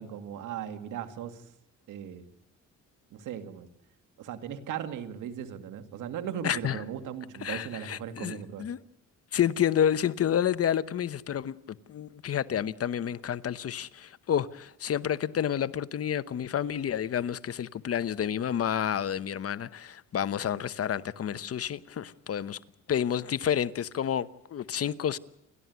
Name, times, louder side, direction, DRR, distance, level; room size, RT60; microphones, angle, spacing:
voice 1, 0.0-1.4 1.9-2.3 3.1-3.7 4.2-8.7, right 9 dB, 85° right, 2.2 m, -38 dB
voice 2, 6.4-6.8 7.4-8.8 9.3-22.6 22.9-25.2, left 9 dB, 50° left, 1.0 m, -29 dB
29.5 x 12.5 x 9.4 m
cardioid pair, 90°, 30 cm